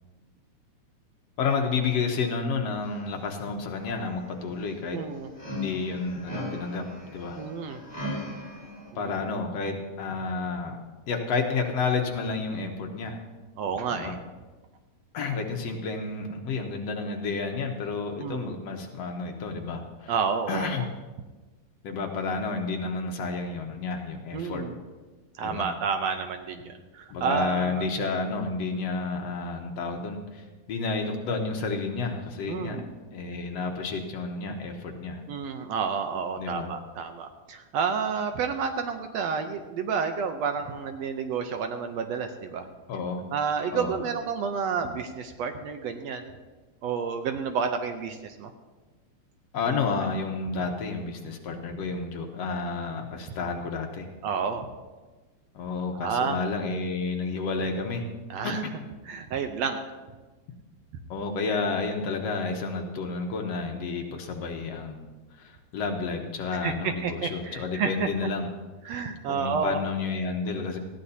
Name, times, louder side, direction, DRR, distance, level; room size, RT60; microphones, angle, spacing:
voice 1, 1.4-5.0 5.5-6.8 7.1-7.4 9.0-10.8 11.1-13.2 13.9-14.1 15.1-20.1 20.5-20.9 21.8-24.6 25.4-25.7 27.1-32.8 33.1-35.2 36.4-36.7 42.9-43.2 43.7-44.0 49.5-54.1 55.5-58.0 58.4-58.7 61.1-65.1 65.4-68.5 68.8-69.0 69.3-70.8, left 4 dB, 65° left, 3 dB, 2.1 m, -30 dB
sound 1, 2.8-3.2 3.5-8.9, left 1 dB, 5° left, 4.1 m, -39 dB
voice 2, 4.9-5.3 7.4-7.8 8.9-9.4 13.6-14.2 18.2-18.6 20.1-20.9 24.3-24.7 25.4-27.9 32.5-32.8 35.3-42.7 43.3-46.3 46.8-48.5 54.2-54.7 55.9-56.4 58.3-58.6 59.0-59.9 66.5-68.1 68.9-69.8, right 6 dB, 70° right, 6 dB, 1.8 m, -30 dB
19.0 x 14.5 x 2.8 m, 1.2 s
omnidirectional pair, 3.4 m